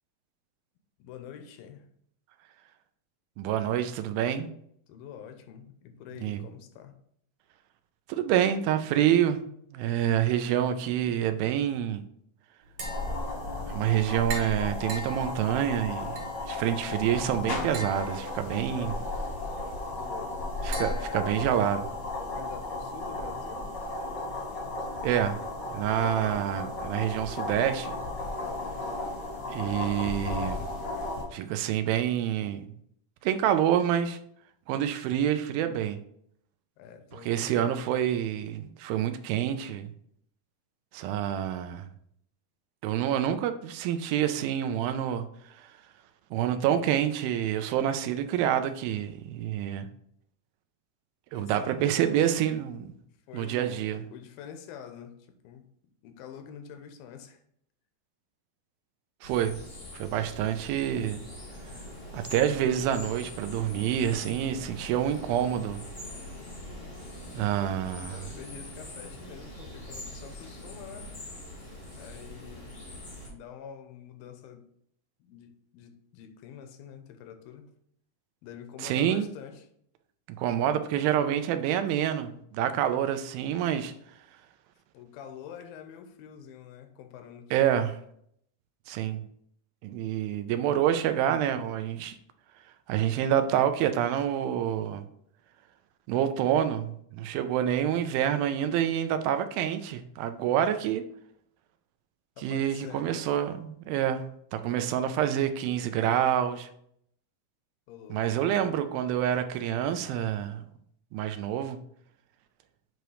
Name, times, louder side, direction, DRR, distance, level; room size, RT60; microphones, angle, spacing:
voice 1, 1.0-1.9 4.9-7.0 20.0-20.5 20.9-21.4 22.2-23.7 29.5-30.2 36.8-37.3 51.3-52.4 53.3-55.7 56.0-57.4 67.3-67.7 68.1-71.2 71.9-72.8 73.3-74.7 75.2-77.7 78.4-79.7 84.9-87.8 102.4-103.6 107.9-108.6, left 8 dB, 90° left, 2.5 m, -46 dB
voice 2, 3.4-4.5 6.2-6.4 8.1-9.4 9.7-12.0 13.7-19.0 20.6-21.9 25.0-25.4 25.7-28.0 29.5-30.7 31.3-32.6 33.2-34.2 34.7-36.0 37.2-39.9 40.9-41.9 42.8-45.3 45.6-45.7 46.3-49.9 51.3-52.9 53.3-54.0 59.2-59.6 59.9-61.2 62.1-65.8 67.3-68.2 78.8-79.3 80.3-83.9 87.5-88.0 88.9-89.2 89.8-92.2 92.9-95.0 96.1-101.0 102.4-106.7 108.1-110.6 111.1-111.8, right 10 dB, 90° right, 2.4 m, -27 dB
Tap, 12.6-22.1, right 3 dB, 55° right, 2.7 m, -44 dB
sound 1, 12.8-31.2, left 2 dB, 60° left, 1.1 m, -34 dB
sound 2, 59.2-73.3, left 1 dB, 40° left, 0.8 m, -43 dB
8.0 x 3.1 x 4.8 m
omnidirectional pair, 4.1 m